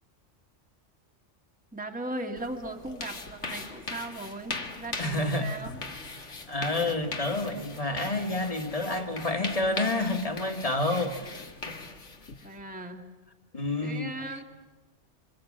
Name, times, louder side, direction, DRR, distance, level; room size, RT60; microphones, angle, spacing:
voice 1, 1.7-5.8 12.4-13.1 13.8-14.4, right 1 dB, 5° right, 1.8 m, -38 dB
sound 1, 2.4-12.6, left 3 dB, 80° left, 2.3 m, -40 dB
voice 2, 5.0-5.5 6.5-11.3 13.5-14.1, left 2 dB, 30° left, 1.9 m, -29 dB
27.5 x 27.0 x 7.5 m
omnidirectional pair, 1.2 m